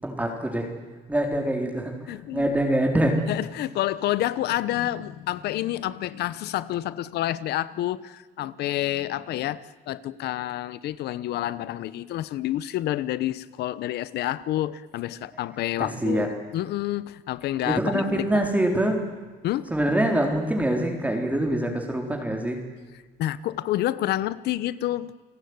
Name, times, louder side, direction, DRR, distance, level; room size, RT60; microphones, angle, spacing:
voice 1, 0.0-0.7 1.1-1.9 2.3-3.2 15.8-16.3 17.7-19.0 19.7-22.6, right 1 dB, 10° right, 2 dB, 4.0 m, -24 dB
voice 2, 2.1-2.5 3.3-18.5 19.4-19.7 23.2-25.1, left 14 dB, 75° left, 17 dB, 1.1 m, -29 dB
29.5 x 18.0 x 9.7 m, 1.4 s
cardioid pair, 110°, 17 cm